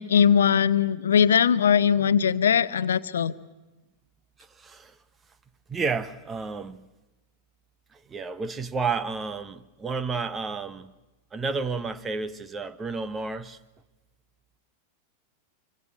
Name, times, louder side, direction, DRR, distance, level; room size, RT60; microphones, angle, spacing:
voice 1, 0.0-3.3, left 7 dB, 65° left, 16 dB, 0.8 m, -20 dB
voice 2, 4.6-4.9 5.7-6.8 8.1-10.9 11.3-13.6, right 4 dB, 20° right, 13 dB, 1.2 m, -31 dB
25.5 x 24.5 x 6.4 m, 1.1 s
figure-of-eight pair, 90°, 0 cm